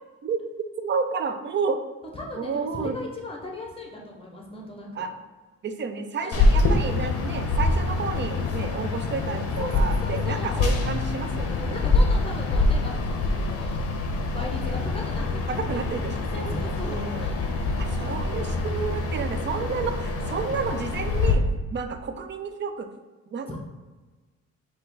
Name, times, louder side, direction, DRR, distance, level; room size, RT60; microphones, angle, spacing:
voice 1, 0.8-1.8 2.4-3.0 4.9-5.1 5.6-11.8 14.6-14.7 15.5-16.4 16.8-17.3 17.8-22.9 23.3-23.6, right 5 dB, 40° right, 8 dB, 0.5 m, -31 dB
voice 2, 2.1-5.1 6.2-6.5 9.6-10.8 11.5-13.8 14.3-15.8 16.3-17.4 17.9-18.5 19.2-19.8 23.5-23.6, left 2 dB, 20° left, -1 dB, 1.1 m, -37 dB
sound 1, 6.3-21.3, left 3 dB, 50° left, 0.7 m, -25 dB
5.2 x 2.3 x 3.9 m, 1.3 s
cardioid pair, 90°, 30 cm